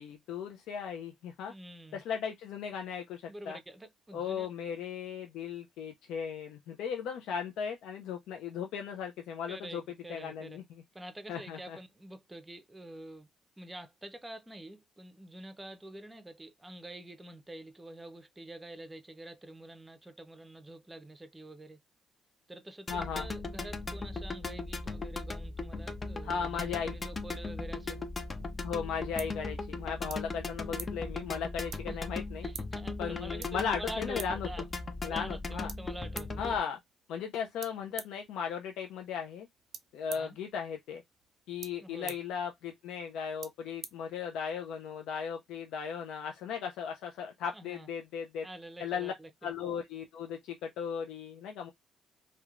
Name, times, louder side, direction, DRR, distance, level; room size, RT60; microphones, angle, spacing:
voice 1, 0.0-1.5 1.9-3.6 4.1-9.8 10.1-10.8 11.3-11.8 22.9-23.3 26.2-27.0 28.6-32.5 33.0-34.5 35.0-35.7 36.4-36.8 37.1-39.5 39.9-41.0 41.5-48.5 48.8-49.1 49.4-51.7, left 7 dB, 90° left, 0.3 m, -37 dB
voice 2, 1.5-2.0 3.3-4.5 9.5-10.6 10.9-13.3 13.6-21.8 22.5-28.0 31.9-32.0 32.4-34.6 35.0-36.4 40.1-40.4 41.8-42.2 47.5-47.9 48.4-49.3, right 1 dB, 15° right, 0.5 m, -46 dB
sound 1, 22.9-36.6, left 3 dB, 30° left, 0.5 m, -38 dB
sound 2, 28.4-44.7, right 8 dB, 70° right, 0.4 m, -51 dB
2.9 x 2.1 x 2.4 m
cardioid pair, 90°, 0 cm